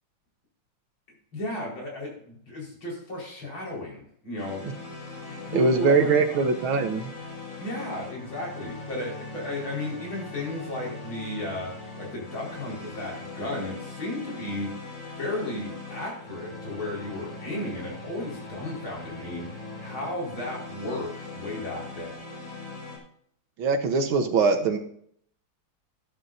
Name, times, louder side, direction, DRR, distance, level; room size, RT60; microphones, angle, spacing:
voice 1, 1.3-4.6 5.3-6.4 7.6-11.7 12.0-14.8 15.2-19.4 19.8-22.2, left 1 dB, 70° left, -3 dB, 5.6 m, -34 dB
sound 1, 4.4-23.0, left 3 dB, 35° left, 4.6 m, -40 dB
voice 2, 5.5-7.1 23.6-24.8, right 4 dB, 75° right, 6 dB, 1.9 m, -22 dB
13.5 x 11.5 x 2.7 m, 0.65 s
omnidirectional pair, 2.3 m